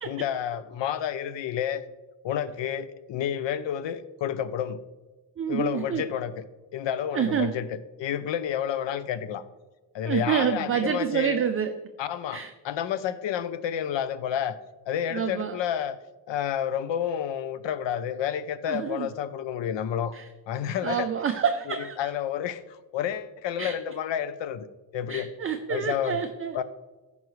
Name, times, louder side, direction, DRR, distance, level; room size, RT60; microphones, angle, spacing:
voice 1, 0.0-1.8 2.2-4.8 5.5-6.3 6.7-7.7 8.0-9.4 9.9-11.5 12.0-14.6 14.9-16.0 16.3-20.1 20.5-21.1 22.0-24.6 24.9-25.3 25.7-26.2 26.5-26.6, left 9 dB, 65° left, 14 dB, 0.7 m, -30 dB
voice 2, 5.4-6.0 7.1-7.5 10.0-11.7 12.3-12.5 15.1-15.6 18.7-19.1 20.1-20.3 20.8-22.1 23.6-23.8 25.1-26.6, right 8 dB, 30° right, 6 dB, 0.3 m, -28 dB
14.5 x 5.4 x 3.1 m, 1.1 s
cardioid pair, 160°, 48 cm